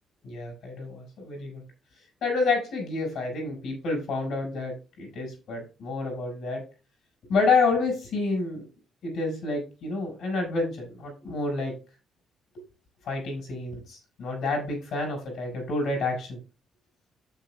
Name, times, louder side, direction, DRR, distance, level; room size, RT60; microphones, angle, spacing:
voice 1, 0.2-1.6 2.2-6.6 7.3-8.6 9.0-11.7 13.0-16.4, left 3 dB, 75° left, 0 dB, 4.6 m, -29 dB
13.0 x 7.3 x 2.2 m, 0.32 s
cardioid pair, 90°, 0 cm